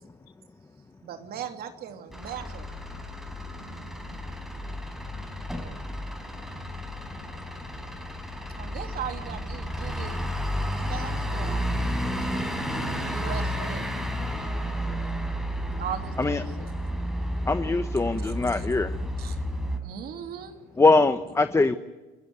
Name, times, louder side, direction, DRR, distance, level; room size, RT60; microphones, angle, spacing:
voice 1, 1.0-2.6 8.5-10.2 10.9-11.7 12.8-13.9 15.8-16.7 18.2-18.6 19.2-19.4 19.8-20.6, right 9 dB, 65° right, 5 dB, 3.0 m, -38 dB
Truck / Idling, 2.1-19.8, equal, ahead, 5.4 m, -32 dB
voice 2, 3.5-4.2 4.5-5.7 6.2-7.3, left 10 dB, 85° left, 8 dB, 1.7 m, -53 dB
voice 3, 17.5-18.9 20.8-21.8, left 3 dB, 15° left, 10 dB, 1.1 m, -22 dB
29.5 x 15.5 x 9.6 m, 1.2 s
cardioid pair, 110°, 17 cm